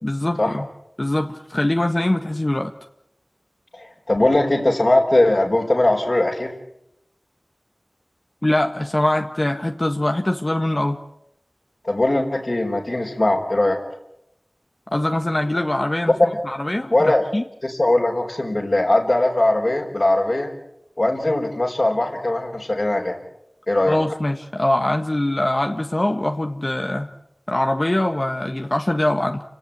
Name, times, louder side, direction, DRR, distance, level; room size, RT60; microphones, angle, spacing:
voice 1, 0.0-0.6 1.0-2.7 8.4-11.0 14.9-16.1 16.4-17.4 23.9-27.1 27.5-29.4, left 1 dB, 40° left, 4 dB, 1.6 m, -22 dB
voice 2, 3.7-6.5 11.8-13.8 16.9-17.2 17.6-20.5 21.0-23.2 23.7-24.0, left 1 dB, 60° left, -3 dB, 4.6 m, -20 dB
29.5 x 18.0 x 8.9 m, 0.83 s
wide cardioid pair, 45°, 0 cm